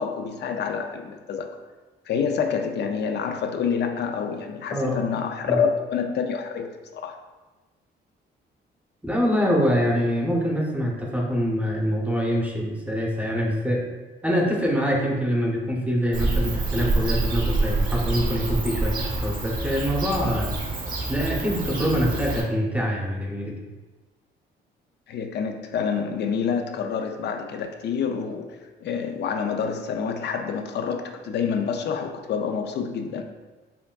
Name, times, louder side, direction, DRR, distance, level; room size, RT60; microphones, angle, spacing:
voice 1, 0.0-1.6 2.1-7.2 25.1-33.2, left 6 dB, 60° left, 6 dB, 0.5 m, -27 dB
voice 2, 4.7-5.0 5.5-5.6 9.0-13.8 14.2-20.5 21.1-23.6, equal, 5° right, -2 dB, 0.7 m, -24 dB
Bird / Cricket, 16.1-22.4, right 2 dB, 45° right, 0.9 m, -27 dB
5.5 x 2.5 x 2.3 m, 1.2 s
cardioid pair, 90°, 20 cm